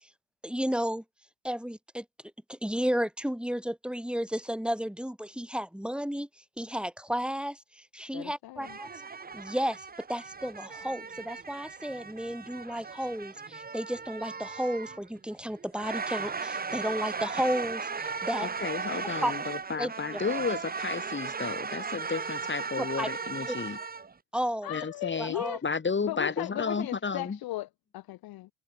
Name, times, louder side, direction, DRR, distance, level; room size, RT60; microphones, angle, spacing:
voice 1, 0.4-1.0 1.4-2.1 2.5-6.3 6.6-8.9 9.3-18.5 19.2-19.3 19.8-19.9 22.8-23.1 23.5-23.6 24.3-24.7 25.2-25.6, equal, ahead, 3.7 m, -32 dB
voice 2, 8.1-8.8 24.6-25.6 26.0-28.5, left 16 dB, 50° left, 0.9 m, -37 dB
sound 1, 8.6-24.1, right 5 dB, 20° right, 1.2 m, -37 dB
voice 3, 18.4-23.8 24.7-25.4 25.6-27.4, left 5 dB, 25° left, 1.9 m, -32 dB
hypercardioid pair, 55°, 45 cm